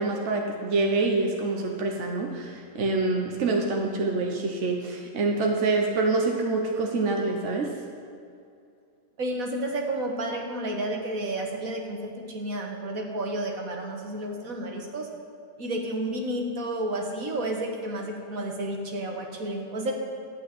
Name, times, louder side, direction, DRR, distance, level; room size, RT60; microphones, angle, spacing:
voice 1, 0.0-7.7, right 3 dB, 60° right, 1 dB, 1.3 m, -26 dB
voice 2, 9.2-15.1 15.6-19.9, right 1 dB, 75° right, 1 dB, 1.9 m, -31 dB
13.0 x 5.9 x 9.2 m, 2.5 s
omnidirectional pair, 1.5 m